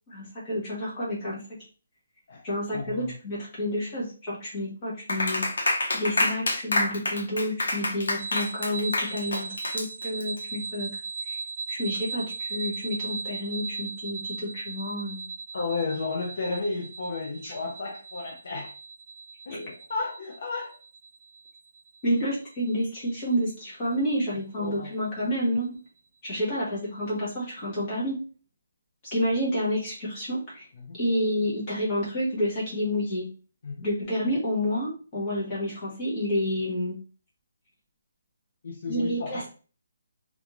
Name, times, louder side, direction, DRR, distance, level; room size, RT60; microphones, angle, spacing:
voice 1, 0.1-1.4 2.4-5.4 5.9-10.9 11.3-11.4 11.7-15.3 17.4-17.5 19.5-19.6 22.0-25.7 26.2-28.2 29.1-30.7 31.0-33.2 33.8-37.0 38.9-39.5, equal, 20° left, -6 dB, 1.2 m, -29 dB
voice 2, 2.7-3.1 15.5-18.7 19.5-20.8 24.6-24.9 26.5-26.6 30.8-31.0 33.6-33.9 38.6-39.5, left 3 dB, 45° left, 1 dB, 0.5 m, -33 dB
Clapping, 5.1-10.4, left 2 dB, 80° left, 0.9 m, -27 dB
sound 1, 8.2-23.8, right 4 dB, 50° right, 0.4 m, -38 dB
3.3 x 2.5 x 3.0 m, 0.37 s
hypercardioid pair, 180°, 0 cm